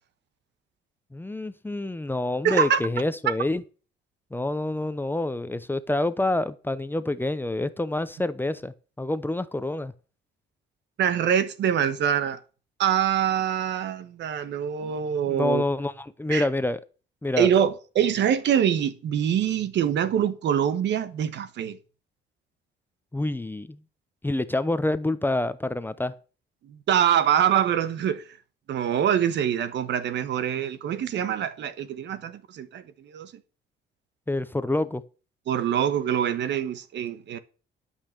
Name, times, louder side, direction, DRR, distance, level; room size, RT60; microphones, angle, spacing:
voice 1, 1.1-3.6 4.3-9.9 14.8-14.9 15.3-16.8 17.2-17.5 23.1-23.8 24.2-26.1 34.3-35.0, left 2 dB, 10° left, 0.7 m, -27 dB
voice 2, 2.4-2.8 11.0-12.4 12.8-15.6 16.3-16.5 17.4-21.8 26.7-28.2 28.7-33.3 35.5-37.4, right 9 dB, 65° right, 1.2 m, -24 dB
12.0 x 5.6 x 6.5 m
cardioid pair, 95°, 19 cm